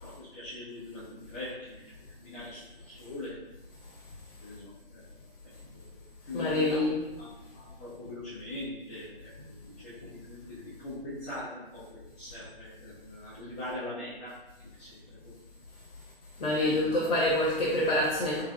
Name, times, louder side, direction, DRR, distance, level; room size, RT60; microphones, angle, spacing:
voice 1, 0.0-1.8 2.2-2.6 2.8-3.3 4.4-5.0 5.7-6.0 6.3-6.8 7.2-7.3 7.5-14.3 14.8-15.3 16.4-17.0, left 1 dB, 15° left, -13 dB, 0.8 m, -41 dB
voice 2, 6.3-7.0 16.4-18.4, left 1 dB, 45° left, -6 dB, 1.1 m, -26 dB
3.6 x 3.3 x 2.4 m, 1.0 s
figure-of-eight pair, 135°, 30 cm